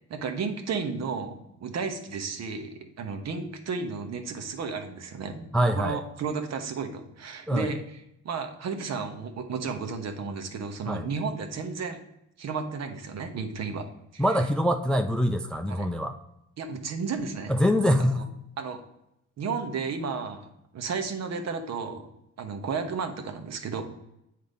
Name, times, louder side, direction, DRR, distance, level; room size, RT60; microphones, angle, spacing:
voice 1, 0.1-12.0 12.4-14.2 15.7-15.9 16.6-17.5 18.2-18.3 18.6-18.8 19.4-22.1 22.4-23.8, right 5 dB, 60° right, 5 dB, 1.0 m, -33 dB
voice 2, 5.5-6.0 7.5-7.7 10.9-11.1 14.2-16.2 17.5-18.2, equal, 5° left, 7 dB, 0.4 m, -24 dB
8.0 x 2.8 x 5.1 m, 0.82 s
cardioid pair, 90°, 30 cm